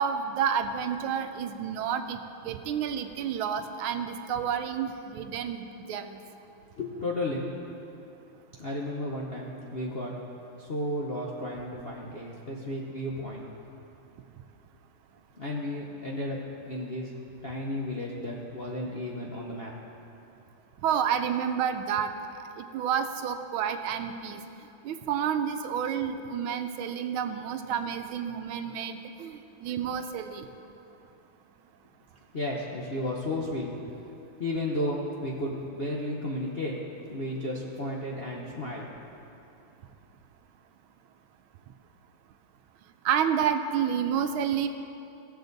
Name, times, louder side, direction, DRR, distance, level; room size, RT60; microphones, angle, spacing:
voice 1, 0.0-6.2 20.8-22.1 22.6-24.4 24.8-30.5 43.0-44.7, right 8 dB, 85° right, 8 dB, 1.5 m, -30 dB
voice 2, 6.8-7.5 8.6-10.1 10.6-13.4 15.4-16.4 16.6-17.1 17.4-19.7 32.3-33.7 34.4-36.8 37.1-38.9, left 1 dB, 55° left, -3 dB, 0.6 m, -33 dB
17.0 x 7.0 x 4.0 m, 2.8 s
omnidirectional pair, 2.2 m